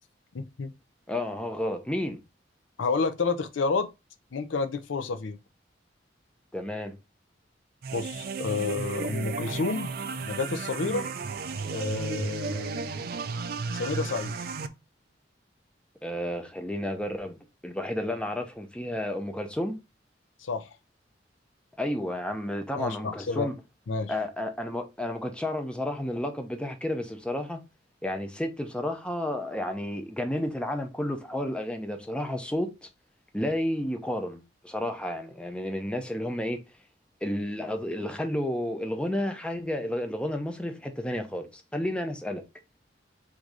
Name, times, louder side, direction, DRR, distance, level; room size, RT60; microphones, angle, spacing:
voice 1, 0.3-0.7 2.8-3.9 4.3-5.4 7.9-9.9 10.2-11.1 11.6-13.0 13.7-14.3 20.4-20.7 22.8-23.5 23.9-24.1, left 4 dB, 90° left, 0.5 m, -30 dB
voice 2, 1.1-2.2 6.5-7.0 10.9-11.1 16.0-19.8 21.8-23.5 24.1-27.6 28.0-32.9 33.3-36.6 37.2-42.4, left 1 dB, 5° left, 0.6 m, -31 dB
sound 1, 7.8-14.7, right 5 dB, 50° right, 0.4 m, -34 dB
3.7 x 2.7 x 4.7 m
head